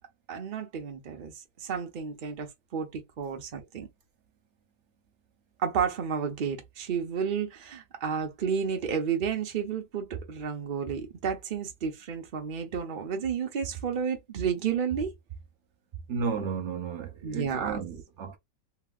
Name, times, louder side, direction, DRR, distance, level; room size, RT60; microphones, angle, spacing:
voice 1, 0.3-3.9 5.6-15.1 17.2-17.8, right 7 dB, 85° right, 0.4 m, -31 dB
voice 2, 16.1-18.4, right 5 dB, 55° right, 0.8 m, -33 dB
2.9 x 2.9 x 2.3 m
omnidirectional pair, 1.9 m